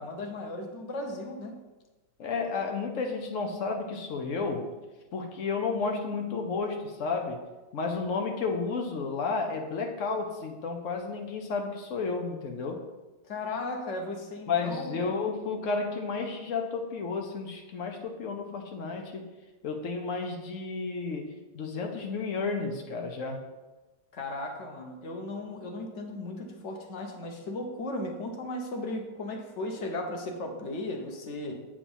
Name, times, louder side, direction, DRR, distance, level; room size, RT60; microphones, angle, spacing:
voice 1, 0.0-1.6 13.3-15.0 24.1-31.6, left 2 dB, 45° left, 3 dB, 0.9 m, -36 dB
voice 2, 2.2-4.7 5.1-7.4 7.7-12.8 14.5-19.2 19.6-23.4, left 4 dB, 85° left, 3 dB, 0.6 m, -32 dB
8.5 x 5.1 x 5.4 m, 1.2 s
omnidirectional pair, 2.4 m